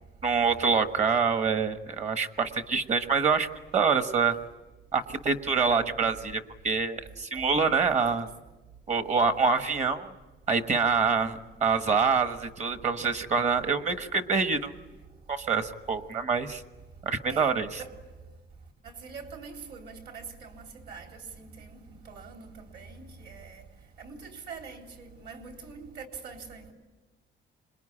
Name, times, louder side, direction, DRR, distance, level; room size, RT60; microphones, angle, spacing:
voice 1, 0.2-3.5 3.7-4.3 4.9-8.3 8.9-10.1 10.5-14.7 15.3-16.6 17.0-17.8, right 5 dB, 35° right, 1.3 m, -26 dB
voice 2, 11.0-11.4 17.3-17.9 18.8-21.5 22.1-23.6 24.0-26.7, right 5 dB, 60° right, 3.7 m, -44 dB
26.5 x 21.5 x 10.0 m
cardioid pair, 180°, 20 cm